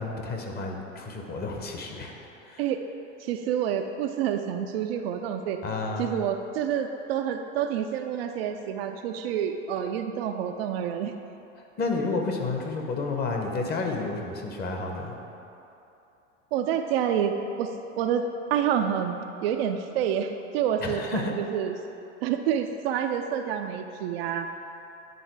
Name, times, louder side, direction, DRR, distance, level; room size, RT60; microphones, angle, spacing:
voice 1, 0.0-2.1 2.4-2.6 5.6-6.1 11.8-15.1 20.8-21.3, left 3 dB, 25° left, 2 dB, 0.9 m, -31 dB
voice 2, 3.2-5.6 6.0-11.1 16.5-17.7 18.0-21.7 22.2-24.5, right 8 dB, 50° right, 5 dB, 0.5 m, -28 dB
9.3 x 3.8 x 4.5 m, 2.8 s
hypercardioid pair, 90°, 38 cm